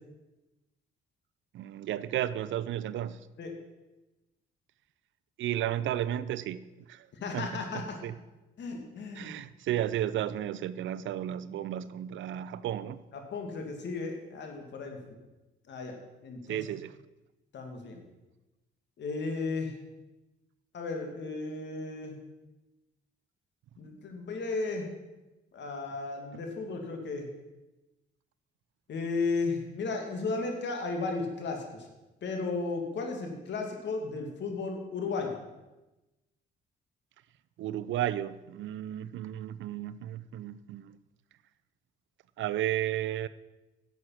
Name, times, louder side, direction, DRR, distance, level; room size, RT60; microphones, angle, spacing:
voice 1, 1.5-3.2 5.4-7.1 7.3-7.5 7.7-8.1 9.2-13.0 16.5-16.9 37.6-41.0 42.4-43.3, right 12 dB, 75° right, 0.6 m, -33 dB
voice 2, 7.1-8.0 8.6-9.3 13.1-15.0 15.7-16.6 17.5-18.0 19.0-19.7 20.7-22.1 23.8-24.9 25.5-27.3 28.9-31.9 32.2-35.4, left 3 dB, 65° left, 2.5 m, -34 dB
11.0 x 7.8 x 5.9 m
cardioid pair, 90°, 20 cm